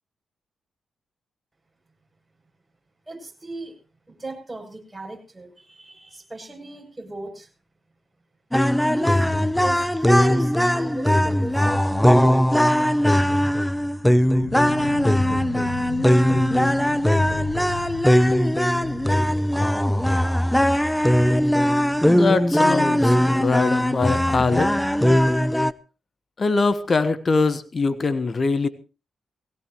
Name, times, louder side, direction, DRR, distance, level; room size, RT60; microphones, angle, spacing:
voice 1, 3.1-3.8 4.1-7.5 8.9-12.4, right 2 dB, 20° right, 2 dB, 7.9 m, -38 dB
sound 1, 8.5-25.7, equal, 5° left, 0.8 m, -19 dB
sound 2, 14.2-20.2, left 10 dB, 85° left, 0.9 m, -37 dB
voice 2, 22.0-24.7 26.4-28.7, left 4 dB, 45° left, 13 dB, 1.4 m, -22 dB
20.0 x 17.0 x 3.1 m, 0.33 s
hypercardioid pair, 40°, 0 cm